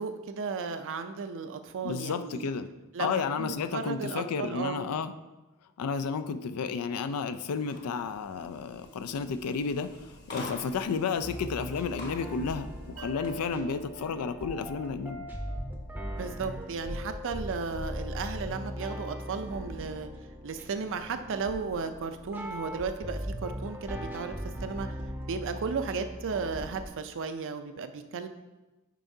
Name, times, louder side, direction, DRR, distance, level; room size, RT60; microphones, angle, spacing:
voice 1, 0.0-2.5 2.9-4.8 13.5-13.8 16.1-20.1 20.4-24.9 25.3-28.3, right 5 dB, 60° right, 9 dB, 0.5 m, -35 dB
voice 2, 1.8-2.7 3.0-5.2 5.8-15.3, left 5 dB, 80° left, 11 dB, 0.4 m, -32 dB
sound 1, 7.6-13.4, left 1 dB, 50° left, 1.2 m, -47 dB
sound 2, 11.2-26.9, equal, 10° right, 0.6 m, -39 dB
sound 3, 13.0-16.4, right 4 dB, 85° right, 1.4 m, -48 dB
9.1 x 4.6 x 2.7 m, 1.1 s
head